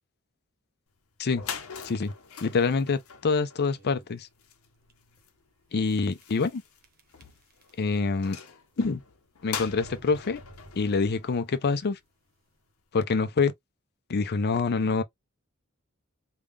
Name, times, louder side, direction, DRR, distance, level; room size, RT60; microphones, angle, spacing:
sound 1, 1.0-1.1 1.3-12.0, left 7 dB, 75° left, 0.8 m, -43 dB
voice 1, 2.4-4.3 5.7-6.6 7.8-8.4 8.8-9.0 9.4-10.4 10.8-12.0 12.9-13.5 14.1-15.0, left 4 dB, 50° left, 0.5 m, -26 dB
sound 2, 3.8-4.2 4.8-4.9 5.2-5.3 6.2-6.6 6.8-8.0 8.3-8.8 9.5-11.4, right 1 dB, 45° right, 0.9 m, -51 dB
3.4 x 2.3 x 3.4 m
head